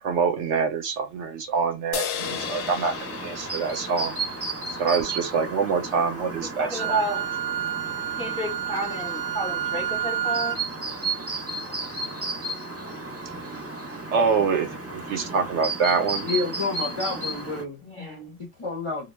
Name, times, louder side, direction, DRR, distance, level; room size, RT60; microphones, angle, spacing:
voice 1, 0.0-4.2 4.7-7.0 14.1-16.2, right 5 dB, 70° right, 0.8 m, -25 dB
sound 1, 1.9-5.4, left 8 dB, 65° left, 0.8 m, -35 dB
Chirp tweet, 2.2-17.6, right 3 dB, 15° right, 0.5 m, -34 dB
voice 2, 6.4-7.3 8.2-10.6 17.8-18.2, right 1 dB, 5° left, 0.8 m, -31 dB
Wind instrument woodwind instrument, 6.8-10.6, right 11 dB, 90° right, 1.0 m, -29 dB
voice 3, 16.2-19.1, left 4 dB, 40° left, 0.4 m, -30 dB
2.2 x 2.2 x 3.2 m
omnidirectional pair, 1.4 m